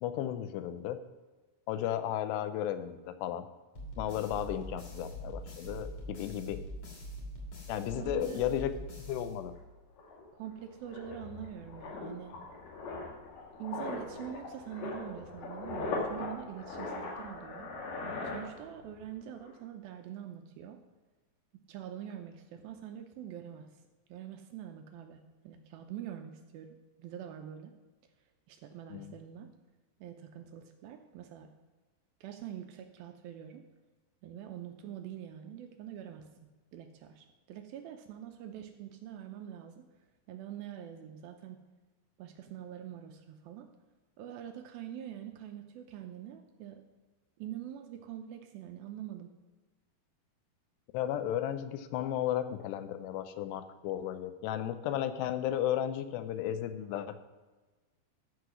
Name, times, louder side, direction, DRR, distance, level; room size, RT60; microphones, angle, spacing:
voice 1, 0.0-1.0 1.7-3.5 4.0-6.6 7.7-8.7 9.1-9.5 28.9-29.2 50.9-57.2, left 11 dB, 85° left, 10 dB, 2.8 m, -34 dB
sound 1, 3.7-9.9, equal, 45° left, 3.7 m, -43 dB
voice 2, 7.9-8.4 10.4-12.4 13.6-17.7 18.0-20.8 21.7-23.7 24.1-27.7 28.5-29.5 30.0-31.5 32.2-33.6 34.2-36.3 36.7-39.8 40.3-41.6 42.2-43.7 44.2-46.8 47.4-49.3, right 10 dB, 80° right, 6 dB, 2.2 m, -44 dB
sound 2, 9.6-9.7 10.0-19.0 19.3-19.6, left 3 dB, 70° left, 4.0 m, -40 dB
14.0 x 4.9 x 6.1 m, 1.3 s
omnidirectional pair, 4.8 m